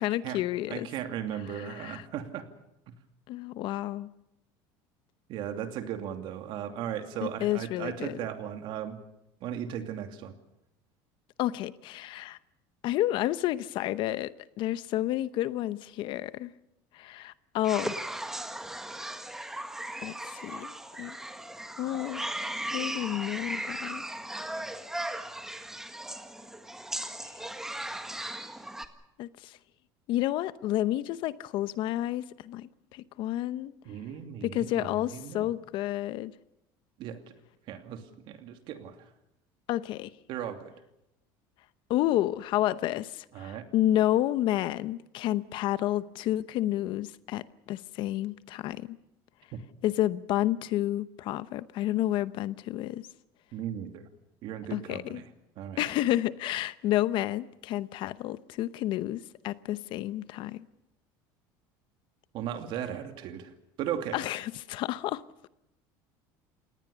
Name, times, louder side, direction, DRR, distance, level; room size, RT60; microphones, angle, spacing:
voice 1, 0.0-0.9 1.5-2.0 3.3-4.1 7.4-8.2 11.4-12.4 12.8-16.5 16.9-18.0 20.0-21.2 21.8-22.3 22.7-24.0 27.2-27.4 29.2-29.6 30.1-33.7 34.4-36.3 39.7-40.1 41.9-47.4 47.7-49.0 49.8-53.1 54.7-55.2 55.8-60.7 64.1-65.2, left 14 dB, 55° left, 0.8 m, -30 dB
voice 2, 0.7-2.5 5.3-9.0 9.4-10.3 33.8-35.5 37.0-37.2 37.7-39.1 40.3-40.7 43.3-43.7 53.5-54.0 54.4-55.3 55.6-55.8 62.3-63.5 63.8-64.2, right 9 dB, 55° right, 2.6 m, -36 dB
sound 1, 17.6-28.9, right 1 dB, 5° right, 1.6 m, -37 dB
27.0 x 18.5 x 7.0 m
cardioid pair, 130°, 10 cm